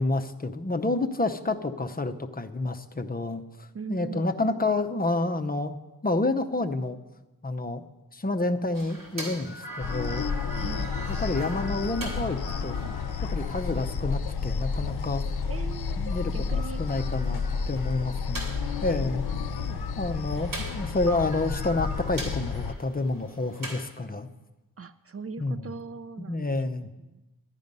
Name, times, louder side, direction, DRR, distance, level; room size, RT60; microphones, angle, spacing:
voice 1, 0.0-5.8 6.0-7.0 7.4-7.8 8.1-10.3 11.2-12.8 13.2-15.2 16.0-17.4 17.7-18.5 18.8-19.3 20.0-24.3 25.4-25.7 26.2-26.9, left 2 dB, 25° left, 7 dB, 0.7 m, -29 dB
voice 2, 3.7-4.5 10.5-11.0 15.5-16.0 16.3-16.8 19.2-20.3 24.8-26.6 27.0-27.2, right 5 dB, 40° right, 12 dB, 0.4 m, -41 dB
sound 1, 8.7-23.8, right 1 dB, 60° right, 3.3 m, -42 dB
sound 2, 9.8-22.7, left 5 dB, 80° left, 0.6 m, -31 dB
11.5 x 10.5 x 5.4 m, 1.0 s
wide cardioid pair, 120°, 37 cm